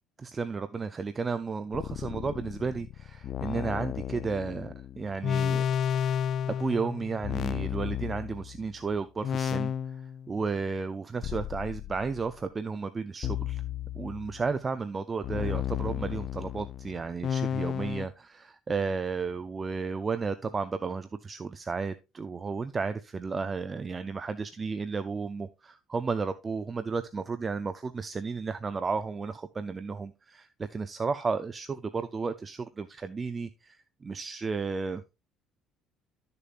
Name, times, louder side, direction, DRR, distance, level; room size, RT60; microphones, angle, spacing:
voice 1, 0.2-5.6 6.0-6.2 6.5-9.7 10.3-13.6 13.9-35.0, right 4 dB, 20° right, 0.5 m, -33 dB
sound 1, 1.7-8.7 9.2-10.4 11.2-12.4 13.2-14.5 15.2-18.1, left 9 dB, 40° left, 0.4 m, -33 dB
12.5 x 6.7 x 2.4 m
cardioid pair, 150°, 0 cm